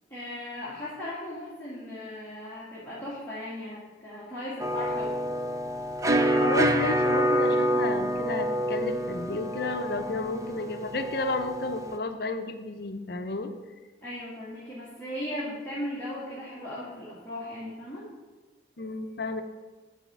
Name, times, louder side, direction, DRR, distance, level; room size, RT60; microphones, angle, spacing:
voice 1, 0.1-5.1 14.0-18.0, left 1 dB, 10° left, -11 dB, 2.0 m, -37 dB
sound 1, 4.6-12.0, right 1 dB, 15° right, 0.4 m, -27 dB
voice 2, 6.4-13.5 18.8-19.4, left 2 dB, 55° left, 7 dB, 0.7 m, -32 dB
11.0 x 4.2 x 6.1 m, 1.3 s
head